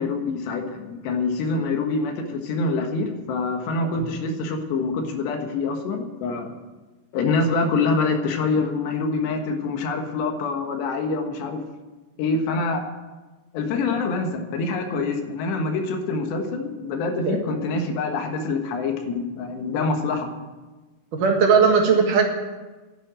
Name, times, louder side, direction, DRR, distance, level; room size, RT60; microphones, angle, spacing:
voice 1, 0.0-6.5 7.1-11.6 12.2-12.8 13.5-20.3, left 3 dB, 85° left, 4 dB, 3.7 m, -25 dB
voice 2, 21.1-22.3, right 5 dB, 60° right, 1 dB, 2.9 m, -18 dB
11.0 x 10.0 x 9.0 m, 1.2 s
omnidirectional pair, 4.8 m